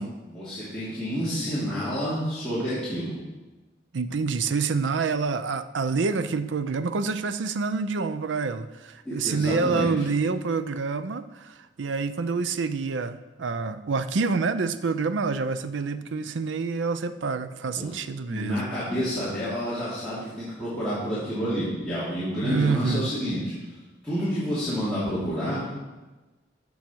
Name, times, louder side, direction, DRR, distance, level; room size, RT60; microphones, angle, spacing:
voice 1, 0.3-3.2 9.0-9.9 17.7-17.9 18.3-23.5 24.0-25.7, equal, 5° left, -13 dB, 2.9 m, -29 dB
voice 2, 3.9-18.6 22.4-23.1, right 4 dB, 80° right, 12 dB, 0.5 m, -27 dB
14.5 x 6.3 x 4.6 m, 1.2 s
head